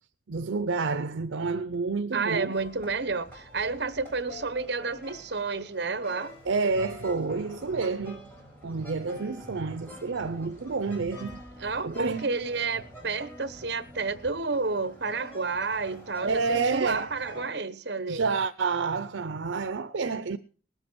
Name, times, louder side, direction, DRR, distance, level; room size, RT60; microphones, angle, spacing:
voice 1, 0.3-2.5 6.4-8.2 8.6-11.4 11.8-12.3 16.2-17.1 18.1-20.4, right 4 dB, 80° right, 0.6 m, -29 dB
voice 2, 2.1-6.3 11.6-18.3, right 4 dB, 60° right, 1.1 m, -30 dB
sound 1, 2.5-17.5, left 1 dB, 15° left, 6.1 m, -47 dB
19.5 x 7.9 x 6.1 m
head